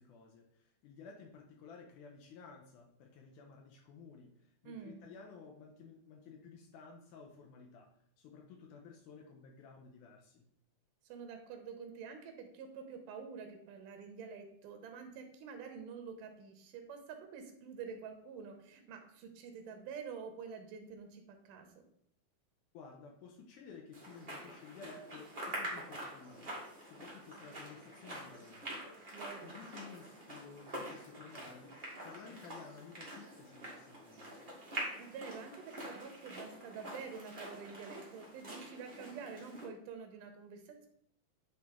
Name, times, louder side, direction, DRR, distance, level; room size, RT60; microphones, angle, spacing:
voice 1, 0.0-7.9 8.2-10.5 22.7-26.6 26.8-28.8 29.1-34.4, left 5 dB, 80° left, 2 dB, 2.1 m, -54 dB
voice 2, 4.7-5.0 11.0-21.7 29.1-29.6 35.0-40.9, right 6 dB, 85° right, 5 dB, 2.5 m, -48 dB
sound 1, 23.9-39.6, right 1 dB, 40° right, 0.7 m, -46 dB
9.3 x 3.3 x 3.5 m, 0.69 s
omnidirectional pair, 3.7 m